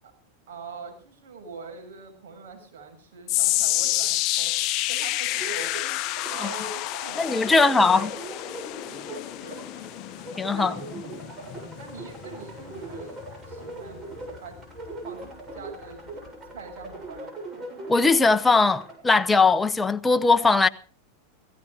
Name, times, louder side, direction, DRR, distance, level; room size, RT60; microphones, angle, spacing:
voice 1, 0.5-4.5 4.9-5.7 6.2-8.1 9.4-9.9 10.5-10.8 11.4-14.6 15.0-15.2 15.5-17.3, right 4 dB, 70° right, 7.5 m, -43 dB
sound 1, 3.3-15.6 15.9-16.3 16.9-17.0, left 16 dB, 50° left, 0.7 m, -30 dB
sound 2, 5.3-19.0, right 2 dB, 30° right, 6.8 m, -41 dB
voice 2, 7.2-8.1 10.4-10.7 17.9-20.7, left 4 dB, 15° left, 0.9 m, -20 dB
16.5 x 16.0 x 5.0 m
hypercardioid pair, 110°, 0 cm